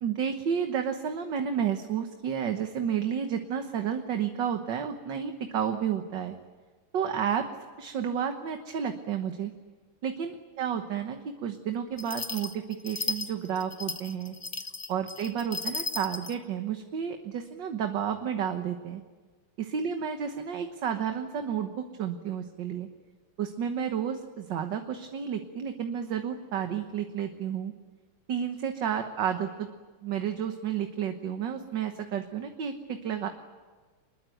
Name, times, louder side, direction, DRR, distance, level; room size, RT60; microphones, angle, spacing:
voice 1, 0.0-6.3 6.9-7.5 7.8-9.5 10.0-14.4 14.9-19.0 19.6-22.9 23.4-27.7 28.3-29.7 30.0-33.3, right 8 dB, 60° right, 6 dB, 1.8 m, -31 dB
sound 1, 12.0-16.4, left 3 dB, 30° left, 0.7 m, -35 dB
25.0 x 21.5 x 9.2 m, 1.4 s
omnidirectional pair, 2.4 m